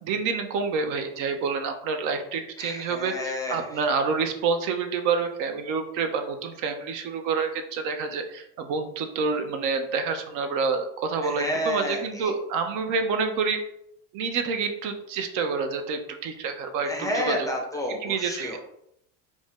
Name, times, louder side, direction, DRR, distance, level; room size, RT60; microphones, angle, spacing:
voice 1, 0.0-13.6 14.1-17.5 17.9-18.6, right 5 dB, 55° right, 6 dB, 0.5 m, -28 dB
voice 2, 2.6-3.8 11.2-12.3 16.9-18.6, left 1 dB, 10° left, 0 dB, 0.4 m, -30 dB
2.6 x 2.1 x 3.5 m, 0.77 s
supercardioid pair, 100°, 37 cm